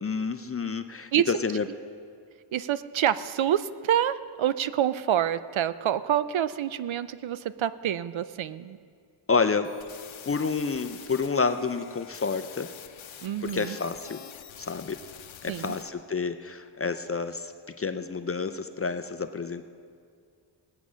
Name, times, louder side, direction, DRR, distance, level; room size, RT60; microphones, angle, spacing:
voice 1, 0.0-1.7 9.3-9.7 10.2-12.7 13.4-14.2 14.6-15.0 15.4-17.5 17.8-19.6, left 5 dB, 30° left, 9 dB, 0.4 m, -29 dB
voice 2, 2.5-8.8 13.2-13.8 15.5-15.8, right 10 dB, 70° right, 14 dB, 0.6 m, -27 dB
sound 1, 9.6-15.9, left 9 dB, 70° left, 0.8 m, -46 dB
19.0 x 8.5 x 6.2 m, 2.2 s
wide cardioid pair, 170°, 49 cm